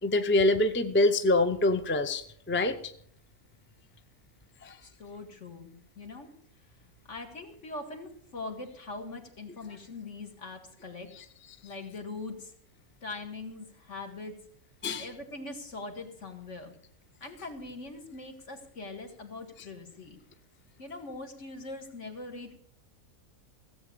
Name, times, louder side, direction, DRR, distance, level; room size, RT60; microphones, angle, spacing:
voice 1, 0.0-2.8 4.6-4.8 11.2-11.3 14.8-15.1, left 2 dB, 15° left, 9 dB, 0.4 m, -25 dB
voice 2, 4.8-6.3 7.1-11.1 11.6-12.5 13.0-14.4 15.0-16.7 17.2-20.2 20.8-22.6, left 3 dB, 55° left, 4 dB, 2.2 m, -42 dB
15.5 x 7.9 x 6.7 m, 0.62 s
omnidirectional pair, 1.5 m